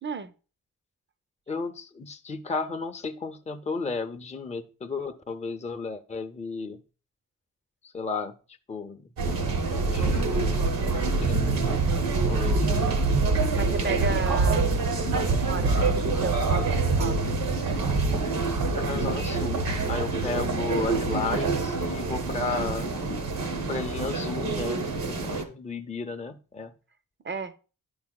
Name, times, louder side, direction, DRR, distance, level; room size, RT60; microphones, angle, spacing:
voice 1, 0.0-0.3 13.5-14.8 15.1-17.6 27.2-27.6, right 5 dB, 35° right, 0.5 m, -34 dB
voice 2, 1.5-6.8 7.9-8.4 8.7-9.1 9.7-10.3 11.2-11.9 12.3-12.7 13.8-14.2 18.7-19.6 19.9-22.9 23.7-26.7, left 4 dB, 20° left, 0.5 m, -33 dB
sound 1, 9.2-25.4, right 3 dB, 85° right, 1.0 m, -26 dB
10.5 x 4.8 x 2.2 m
cardioid pair, 50°, 34 cm